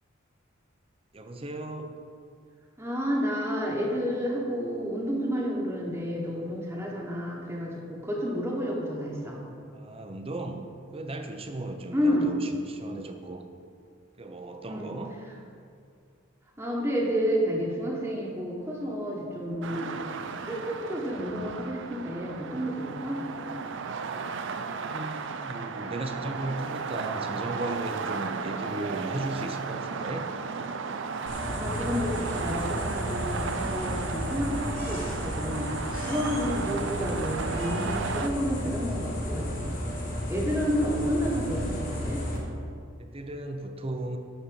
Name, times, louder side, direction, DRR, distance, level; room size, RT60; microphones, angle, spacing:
voice 1, 1.1-2.0 9.7-13.5 14.2-15.2 24.6-30.3 43.0-44.2, right 2 dB, 30° right, 5 dB, 0.8 m, -36 dB
voice 2, 2.8-9.4 11.9-12.3 14.7-14.9 16.6-19.9 20.4-23.3 31.5-39.8 40.3-42.2, equal, 10° right, -4 dB, 1.3 m, -30 dB
sound 1, 19.6-38.3, right 5 dB, 65° right, 0.5 m, -34 dB
sound 2, 31.3-42.4, left 1 dB, 45° left, 2.3 m, -33 dB
sound 3, 32.1-38.0, equal, 85° right, 2.4 m, -51 dB
11.0 x 4.3 x 7.0 m, 2.3 s
head